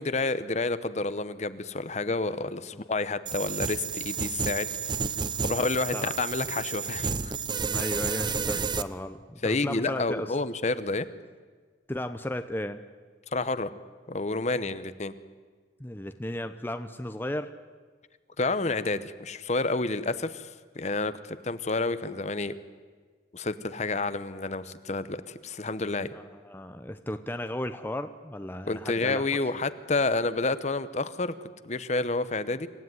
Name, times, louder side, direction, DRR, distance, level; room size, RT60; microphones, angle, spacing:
voice 1, 0.0-4.7 5.4-7.3 8.5-8.6 9.4-11.1 13.3-13.7 14.1-15.1 18.4-20.5 20.7-22.5 23.3-26.1 28.7-31.3 31.6-32.7, left 3 dB, 40° left, 13 dB, 0.9 m, -29 dB
sound 1, 3.3-8.8, right 5 dB, 25° right, 0.6 m, -31 dB
voice 2, 5.6-6.1 7.6-10.3 11.9-12.8 15.8-17.5 26.1-29.2, left 1 dB, 10° left, 9 dB, 0.7 m, -35 dB
26.5 x 16.0 x 9.5 m, 1.5 s
head